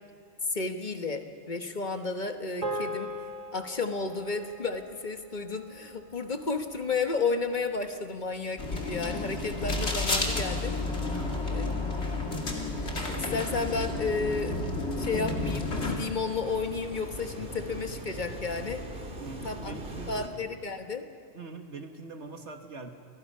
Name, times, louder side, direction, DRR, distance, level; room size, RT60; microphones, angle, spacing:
voice 1, 0.5-3.1 3.5-10.7 11.5-11.6 13.1-18.8 19.4-19.7 20.1-21.0, left 4 dB, 45° left, 7 dB, 1.4 m, -32 dB
sound 1, 2.6-7.1, equal, 30° right, 2.2 m, -40 dB
sound 2, 4.0-5.0 5.3-20.3, right 1 dB, 50° right, 2.6 m, -45 dB
sound 3, 8.6-16.0, left 2 dB, 75° left, 2.7 m, -31 dB
voice 2, 11.1-11.5 19.2-20.3 21.3-22.9, right 3 dB, 80° right, 5 dB, 2.1 m, -42 dB
29.5 x 23.0 x 5.6 m, 2.2 s
omnidirectional pair, 1.1 m